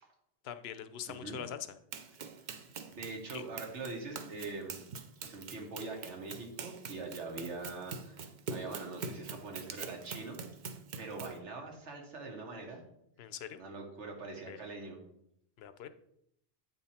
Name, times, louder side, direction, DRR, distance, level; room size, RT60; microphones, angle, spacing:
voice 1, 0.4-1.6 3.3-3.4 13.2-13.6 14.5-14.6 15.6-15.9, left 9 dB, 70° left, 11 dB, 0.8 m, -43 dB
voice 2, 1.1-1.4 2.5-4.8 5.2-10.4 11.0-12.9 13.6-15.0, right 3 dB, 90° right, 1 dB, 1.5 m, -43 dB
Run, 1.9-11.4, right 5 dB, 55° right, 0.6 m, -44 dB
8.6 x 3.7 x 4.2 m, 0.75 s
omnidirectional pair, 1.2 m